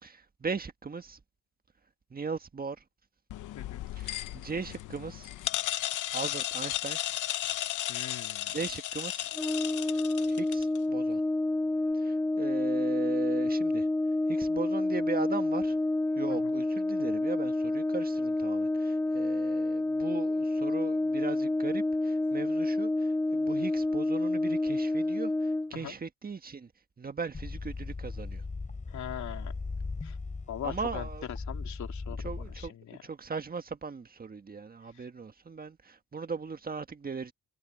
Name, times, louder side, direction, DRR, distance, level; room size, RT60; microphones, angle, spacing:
voice 1, 0.0-1.2 2.1-2.8 3.9-5.3 6.1-7.0 7.9-8.0 8.5-9.3 9.9-11.2 11.9-13.9 14.3-15.8 16.2-26.7 27.0-28.4 30.6-31.3 32.2-37.3, right 5 dB, 30° right, 1.6 m, -38 dB
sound 1, 3.3-10.8, left 14 dB, 85° left, 1.1 m, -35 dB
voice 2, 7.9-8.6 16.3-16.5 25.7-26.0 28.9-29.5 30.0-30.2 30.5-31.1 31.5-33.0, left 11 dB, 70° left, 3.1 m, -41 dB
Brass instrument, 9.3-25.7, left 2 dB, 5° left, 0.5 m, -29 dB
sound 2, 27.3-32.7, left 3 dB, 25° left, 4.5 m, -38 dB
cardioid pair, 90°, 30 cm